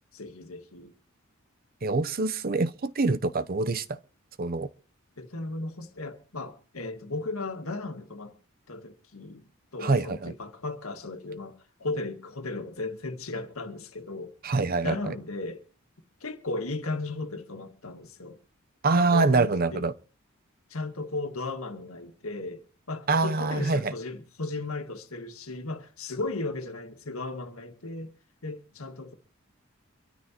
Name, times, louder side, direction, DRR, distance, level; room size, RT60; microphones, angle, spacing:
voice 1, 0.1-0.9 5.2-8.3 8.7-14.3 14.8-15.6 16.2-18.4 18.9-19.8 20.7-28.1 28.4-29.1, left 2 dB, 85° left, 1.8 m, -36 dB
voice 2, 1.8-4.0 4.4-4.7 9.8-10.3 14.4-15.1 18.8-19.9 23.1-23.9, right 3 dB, 45° right, 0.7 m, -25 dB
25.0 x 13.0 x 2.9 m
head